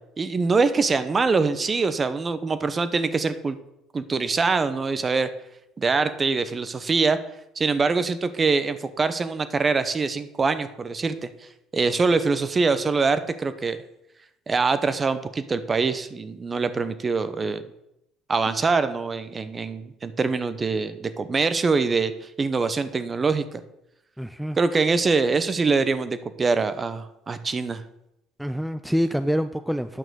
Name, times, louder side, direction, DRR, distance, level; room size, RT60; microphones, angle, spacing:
voice 1, 0.2-3.6 3.9-5.3 5.8-7.2 7.6-11.3 11.7-13.8 14.5-17.6 18.3-23.6 24.6-27.8, right 4 dB, 30° right, 12 dB, 0.9 m, -24 dB
voice 2, 24.2-24.6 28.4-30.0, equal, ahead, 10 dB, 0.4 m, -26 dB
9.5 x 6.0 x 6.3 m, 0.84 s
supercardioid pair, 80°, 0 cm